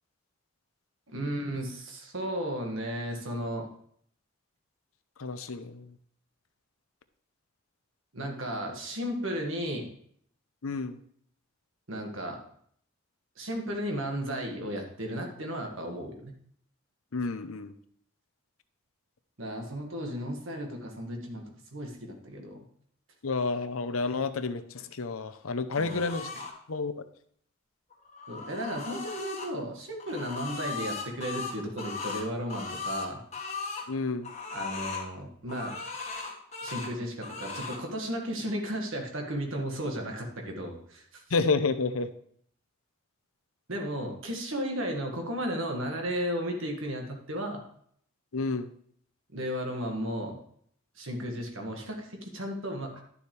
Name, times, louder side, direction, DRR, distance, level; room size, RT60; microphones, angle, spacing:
voice 1, 1.1-3.7 8.1-9.9 11.9-12.4 13.4-16.3 19.4-21.4 21.7-22.7 25.8-26.0 28.3-33.2 34.5-35.8 36.6-41.2 43.7-47.6 49.3-50.4 51.0-53.0, equal, 75° right, 2 dB, 1.8 m, -34 dB
voice 2, 5.2-5.9 10.6-11.0 17.1-17.7 23.2-26.3 26.7-27.0 33.9-34.3 41.3-42.1 48.3-48.7, left 4 dB, 85° left, 11 dB, 0.7 m, -30 dB
sound 1, 25.7-26.5 27.9-29.5 30.0-33.9 34.2-35.1 35.5-36.9 37.2-37.8, left 4 dB, 30° left, 1.4 m, -37 dB
11.5 x 7.0 x 3.3 m, 0.63 s
head